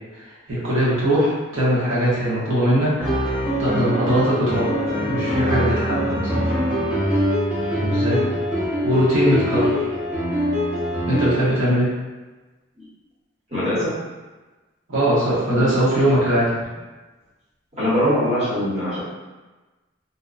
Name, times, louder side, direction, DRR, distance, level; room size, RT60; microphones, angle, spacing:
voice 1, 0.2-3.1 3.6-6.6 7.7-8.2 8.8-9.9 11.1-11.9 14.9-16.5, right 1 dB, 90° right, -8 dB, 0.9 m, -21 dB
sound 1, 3.0-11.3, equal, 10° right, 0.6 m, -23 dB
voice 2, 13.5-13.9 15.5-15.7 17.8-19.0, equal, 35° right, -11 dB, 1.0 m, -22 dB
2.8 x 2.0 x 2.4 m, 1.2 s
head